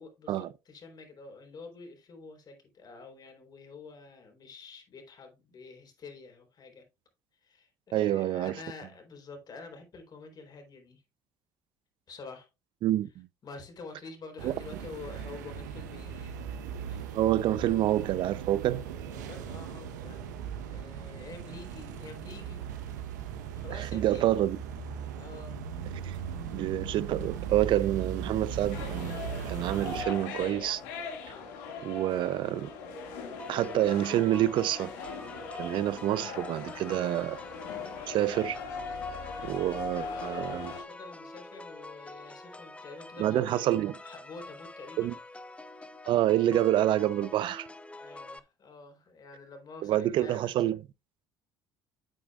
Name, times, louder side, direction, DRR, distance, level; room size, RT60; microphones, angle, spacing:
voice 1, 0.0-6.9 7.3-11.0 12.1-12.5 13.4-16.4 16.8-17.2 19.1-24.4 25.2-25.6 39.5-39.6 39.9-43.7 44.0-45.2 48.0-50.8, left 4 dB, 45° left, 4.0 m, -48 dB
voice 2, 7.9-8.6 12.8-13.3 14.4-14.5 17.1-18.8 23.7-24.6 26.0-26.1 26.5-30.8 31.8-32.7 33.5-34.9 35.6-37.4 38.1-38.6 39.4-40.7 43.2-43.9 45.0-45.1 46.1-47.7 49.8-50.8, right 13 dB, 60° right, 0.6 m, -27 dB
sound 1, 14.4-30.0, right 7 dB, 85° right, 1.1 m, -38 dB
sound 2, 28.7-40.8, left 4 dB, 80° left, 2.2 m, -40 dB
sound 3, 33.4-48.4, left 2 dB, 15° left, 0.8 m, -47 dB
9.2 x 8.6 x 2.5 m
hypercardioid pair, 60°, 9 cm